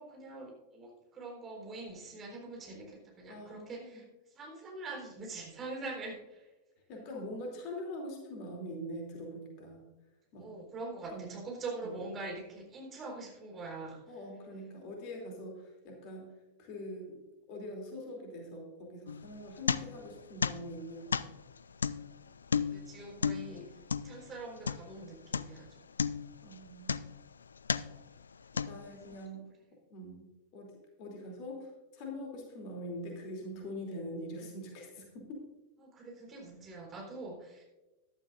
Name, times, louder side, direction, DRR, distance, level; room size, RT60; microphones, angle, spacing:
voice 1, 0.0-4.0 4.3-6.5 10.4-14.0 22.7-25.9 29.1-29.2 35.8-37.6, right 3 dB, 25° right, -1 dB, 4.1 m, -44 dB
voice 2, 3.3-4.0 6.9-9.9 10.3-10.5 11.1-11.3 11.8-12.0 14.1-16.3 16.6-17.2 17.5-21.4 26.4-27.0 28.6-29.5 29.9-35.5, equal, 45° left, 0 dB, 2.9 m, -43 dB
sound 1, 19.1-20.2 20.4-25.0 25.3-25.7 26.0-27.3 27.6-28.1 28.6-29.1, left 6 dB, 70° left, 0.3 m, -34 dB
14.5 x 11.5 x 2.5 m, 1.1 s
figure-of-eight pair, 90°, 0 cm